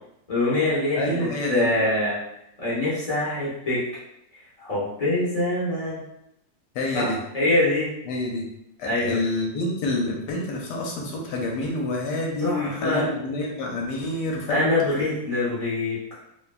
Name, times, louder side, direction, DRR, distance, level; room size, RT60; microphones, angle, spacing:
voice 1, 0.3-2.2 2.6-3.8 4.6-6.0 6.9-7.9 8.8-9.2 12.4-13.1 14.5-16.0, left 2 dB, 45° left, -9 dB, 0.4 m, -24 dB
voice 2, 1.0-1.6 6.7-7.2 8.1-8.4 8.8-14.7, left 2 dB, 75° left, 0 dB, 1.1 m, -27 dB
2.9 x 2.2 x 2.3 m, 0.80 s
omnidirectional pair, 1.9 m